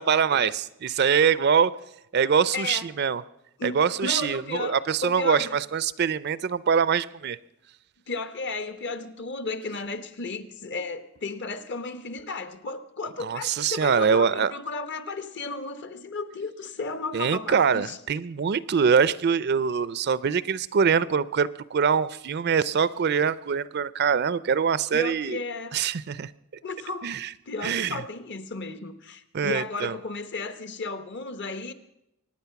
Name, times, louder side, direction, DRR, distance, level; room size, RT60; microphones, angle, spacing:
voice 1, 0.0-1.7 2.1-3.2 3.6-7.4 13.2-14.5 17.1-25.4 25.7-26.3 27.0-27.3 27.6-28.0 29.3-29.9, right 6 dB, 50° right, 0.4 m, -24 dB
voice 2, 2.5-2.9 3.6-4.8 5.0-5.6 8.1-18.0 24.9-25.7 26.6-27.1 27.5-31.7, left 3 dB, 55° left, 1.0 m, -34 dB
23.5 x 9.6 x 5.8 m
head